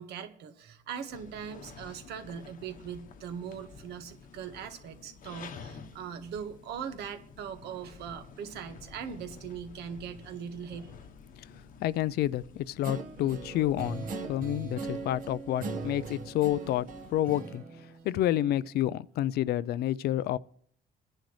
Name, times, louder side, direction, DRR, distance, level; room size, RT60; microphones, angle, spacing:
voice 1, 0.0-10.9, right 7 dB, 75° right, 1.5 m, -40 dB
sound 1, 1.1-17.3, left 5 dB, 55° left, 1.0 m, -51 dB
voice 2, 11.8-17.6 18.0-20.4, left 13 dB, 70° left, 0.5 m, -29 dB
Guitar, 12.8-18.6, right 4 dB, 55° right, 1.2 m, -40 dB
28.5 x 10.5 x 3.2 m
cardioid pair, 110°, 17 cm